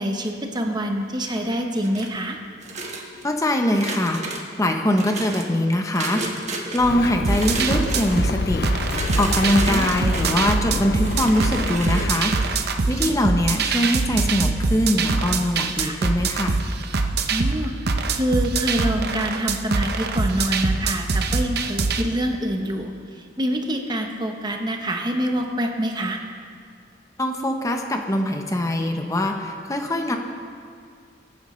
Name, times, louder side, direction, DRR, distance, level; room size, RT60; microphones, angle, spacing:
voice 1, 0.0-2.4 9.7-10.2 15.8-16.0 17.3-17.7 18.1-22.9 23.4-26.2, equal, 25° right, 3 dB, 0.9 m, -26 dB
sound 1, 1.8-2.2 2.6-3.3 3.7-4.4 4.9-5.5 5.9-6.8 7.2-8.3 8.8-10.5 11.0-12.5, right 2 dB, 40° right, 1.4 m, -32 dB
voice 2, 3.2-8.9 9.2-12.3 12.9-16.6 27.2-30.2, left 1 dB, 20° left, 3 dB, 0.8 m, -23 dB
Bird, 6.8-12.2, left 5 dB, 60° left, 0.4 m, -30 dB
sound 2, 7.2-22.0, right 4 dB, 60° right, 0.7 m, -23 dB
21.5 x 9.5 x 3.2 m, 2.2 s
head